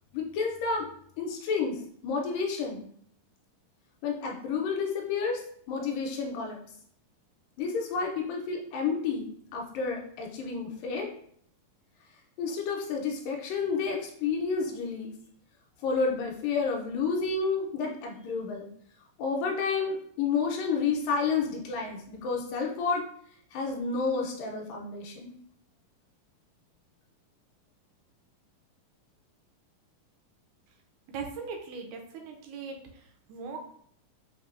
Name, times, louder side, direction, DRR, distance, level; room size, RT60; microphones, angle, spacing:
voice 1, 0.1-0.9 1.2-2.8 4.0-5.4 5.7-6.6 7.6-11.1 12.4-15.1 15.8-18.7 19.2-23.0 23.5-25.3, left 5 dB, 80° left, 0 dB, 2.1 m, -30 dB
voice 2, 31.1-32.8 33.3-33.6, right 5 dB, 85° right, 2 dB, 1.8 m, -39 dB
5.6 x 2.6 x 2.4 m, 0.65 s
omnidirectional pair, 4.0 m